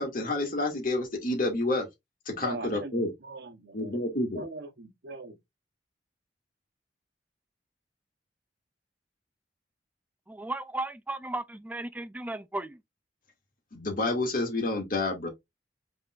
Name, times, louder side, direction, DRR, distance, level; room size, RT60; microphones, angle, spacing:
voice 1, 0.0-1.9 2.3-3.1 3.7-4.4 13.7-15.3, left 2 dB, 50° left, 2.3 m, -29 dB
voice 2, 2.4-4.0 4.3-5.4, right 3 dB, 65° right, 1.0 m, -41 dB
voice 3, 10.3-12.8, right 2 dB, 10° right, 0.4 m, -35 dB
5.4 x 3.7 x 2.5 m
head